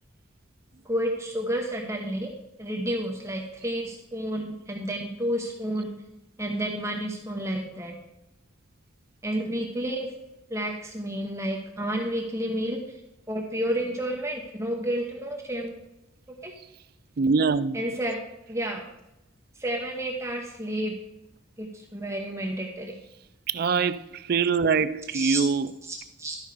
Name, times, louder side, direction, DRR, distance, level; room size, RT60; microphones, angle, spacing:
voice 1, 0.8-2.3 2.6-5.9 6.4-7.9 9.2-10.1 10.5-13.0 13.3-15.7 16.4-16.5 17.7-18.2 18.5-18.8 19.6-20.9 21.6-23.0 25.1-25.4 25.9-26.4, right 1 dB, 15° right, 1.0 m, -30 dB
voice 2, 17.2-17.9 23.5-25.8, right 5 dB, 50° right, 0.4 m, -24 dB
12.5 x 5.4 x 4.9 m
head